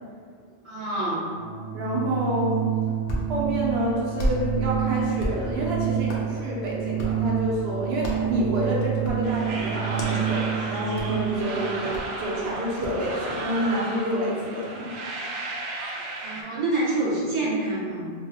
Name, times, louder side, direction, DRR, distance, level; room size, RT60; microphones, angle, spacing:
voice 1, 0.6-1.2 16.2-18.1, right 2 dB, 30° right, -8 dB, 0.8 m, -27 dB
Organ, 1.2-11.5, right 11 dB, 30° left, 0.8 m, -28 dB
voice 2, 1.7-2.6 3.3-14.9, equal, 85° right, -4 dB, 0.9 m, -28 dB
Hands, 2.7-13.1, equal, 70° left, 0.8 m, -35 dB
sound 1, 9.2-16.4, right 2 dB, 60° right, 0.7 m, -35 dB
3.1 x 2.0 x 3.9 m, 2.1 s
omnidirectional pair, 1.1 m